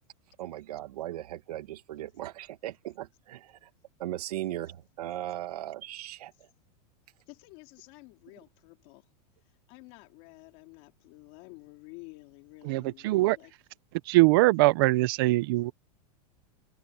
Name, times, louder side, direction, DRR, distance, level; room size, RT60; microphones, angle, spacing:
voice 1, 0.4-3.7 4.0-6.3, right 13 dB, 70° right, 1.6 m, -38 dB
voice 2, 7.3-9.1 9.4-13.5, left 25 dB, 35° left, 3.8 m, -51 dB
voice 3, 12.7-13.4 14.1-15.7, right 20 dB, 35° right, 0.6 m, -22 dB
supercardioid pair, 180°, 20 cm